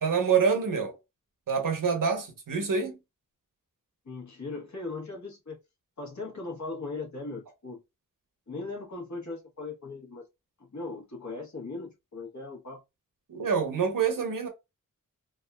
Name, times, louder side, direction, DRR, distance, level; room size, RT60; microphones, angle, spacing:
voice 1, 0.0-0.9 1.5-2.9 13.3-14.5, right 6 dB, 75° right, 1.0 m, -26 dB
voice 2, 4.0-5.6 6.0-7.8 8.5-10.3 10.6-12.8, left 3 dB, 60° left, 1.3 m, -38 dB
3.4 x 2.4 x 2.2 m
wide cardioid pair, 70°, 33 cm